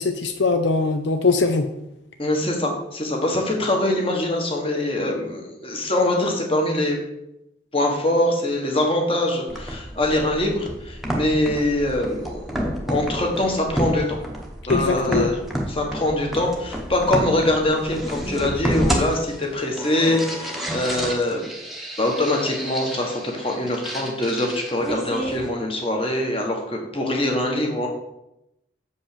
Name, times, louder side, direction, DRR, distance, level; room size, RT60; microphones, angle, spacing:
voice 1, 0.0-1.7 14.7-15.3, left 4 dB, 75° left, 7 dB, 0.6 m, -21 dB
voice 2, 2.2-7.0 7.7-12.6 12.9-14.2 14.7-15.3 15.7-21.5 22.0-27.9, left 1 dB, 30° left, 1 dB, 1.5 m, -23 dB
sound 1, 9.5-25.5, equal, ahead, 1.1 m, -30 dB
7.1 x 5.4 x 6.8 m, 0.87 s
head